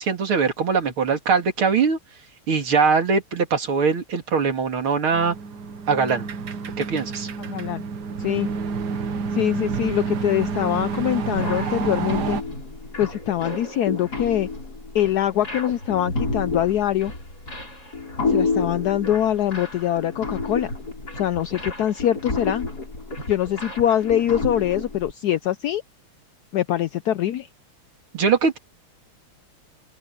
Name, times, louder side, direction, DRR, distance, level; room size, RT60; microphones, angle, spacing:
voice 1, 0.0-2.0 2.5-5.4 5.9-6.3 6.8-7.3 28.1-28.6, right 5 dB, 75° right, 3.3 m, -21 dB
sound 1, 5.1-12.4, right 5 dB, 55° right, 1.6 m, -29 dB
voice 2, 7.4-7.8 8.2-8.5 9.3-12.4 13.0-14.5 14.9-17.1 18.3-20.7 21.1-22.7 23.3-25.8 26.5-27.5, left 11 dB, 80° left, 0.8 m, -23 dB
sound 2, 11.3-25.1, left 3 dB, 45° left, 7.1 m, -30 dB
open air
omnidirectional pair, 2.3 m